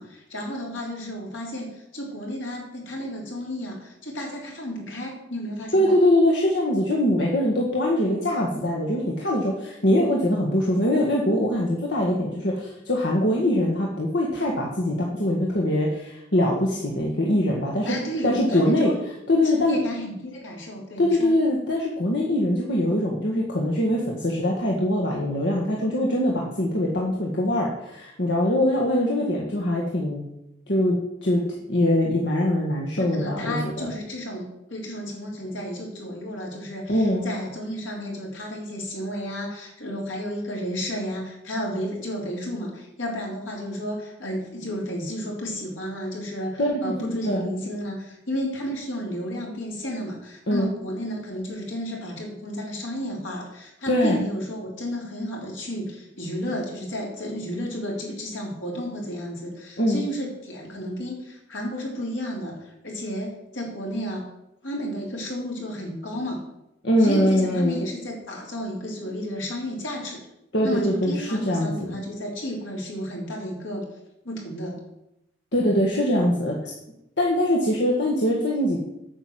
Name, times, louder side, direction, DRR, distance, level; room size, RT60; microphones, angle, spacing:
voice 1, 0.0-5.9 17.9-19.0 19.4-21.3 33.0-64.3 64.6-66.4 67.0-70.3 70.6-73.9 74.2-74.8, equal, 80° left, -1 dB, 3.9 m, -32 dB
voice 2, 5.7-18.0 18.2-18.9 19.3-19.8 21.0-30.2 30.7-31.4 31.7-33.9 36.9-37.3 46.6-46.9 47.2-47.4 50.5-50.7 53.9-54.2 59.8-60.0 66.8-67.8 70.5-71.9 75.5-76.6 77.2-78.8, left 1 dB, 65° left, -2 dB, 1.7 m, -22 dB
8.9 x 7.1 x 7.6 m, 0.85 s
head